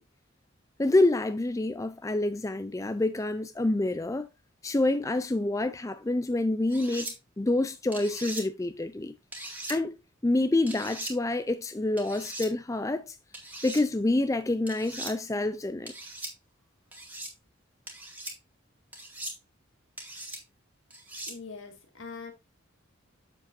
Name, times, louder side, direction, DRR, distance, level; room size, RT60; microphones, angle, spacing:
voice 1, 0.8-4.3 4.6-9.1 9.7-10.0 10.2-13.2 13.6-15.9, left 2 dB, 15° left, 0.4 m, -27 dB
sound 1, 6.7-7.1 7.9-8.4 9.3-9.8 10.7-11.1 12.0-12.5 13.3-13.8 14.7-15.1 15.9-16.3 16.9-17.3 17.9-18.3 18.9-19.4 20.0-20.4 20.9-21.4, right 1 dB, 10° right, 2.0 m, -39 dB
voice 2, 21.3-22.3, left 4 dB, 70° left, 2.2 m, -42 dB
7.8 x 7.3 x 2.6 m
head